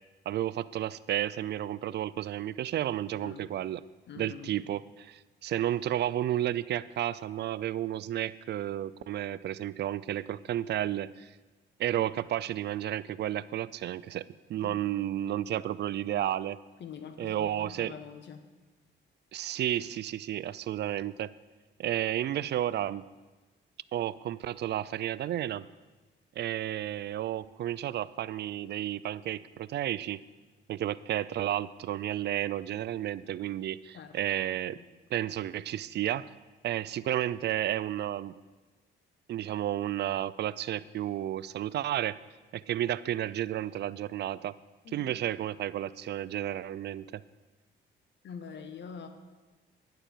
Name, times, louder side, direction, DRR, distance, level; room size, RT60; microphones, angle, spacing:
voice 1, 0.3-3.8 4.2-11.3 11.8-14.2 14.5-16.6 17.2-17.9 19.3-21.3 21.8-23.0 23.9-25.7 26.4-30.2 30.7-34.8 35.1-36.3 36.6-38.4 39.3-42.2 42.5-44.5 44.9-47.2, right 12 dB, 60° right, 18 dB, 0.4 m, -32 dB
voice 2, 3.1-3.5 4.1-4.5 14.6-14.8 16.8-18.4 33.9-34.1 34.7-34.9 44.8-45.1 48.2-49.1, left 7 dB, 65° left, 8 dB, 1.3 m, -44 dB
11.5 x 10.5 x 4.5 m, 1.2 s
cardioid pair, 90°, 20 cm